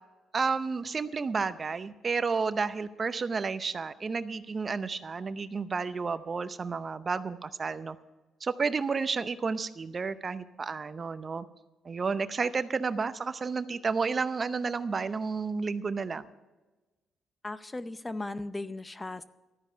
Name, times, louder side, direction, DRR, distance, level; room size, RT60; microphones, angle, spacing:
voice 1, 0.3-8.0 8.4-11.4 11.8-16.3, right 4 dB, 35° right, 13 dB, 0.7 m, -31 dB
voice 2, 17.4-19.2, left 2 dB, 20° left, 13 dB, 0.6 m, -37 dB
13.0 x 9.9 x 6.7 m, 1.1 s
cardioid pair, 90°, 0 cm